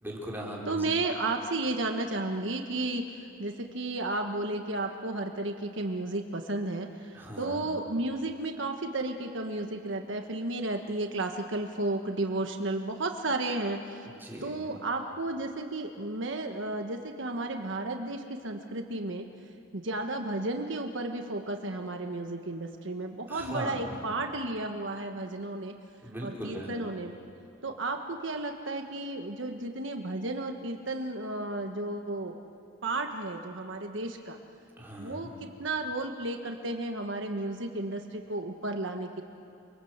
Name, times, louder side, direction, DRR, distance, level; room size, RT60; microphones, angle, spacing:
voice 1, 0.0-0.9 7.1-7.7 14.1-14.7 23.3-24.0 26.0-26.7 34.8-35.3, equal, 10° right, -4 dB, 5.0 m, -39 dB
voice 2, 0.7-14.1 14.4-19.3 19.7-25.7 26.2-27.1 27.6-32.4 32.8-34.4 35.0-39.2, right 2 dB, 65° right, 4 dB, 1.4 m, -33 dB
29.0 x 23.5 x 8.1 m, 2.5 s
head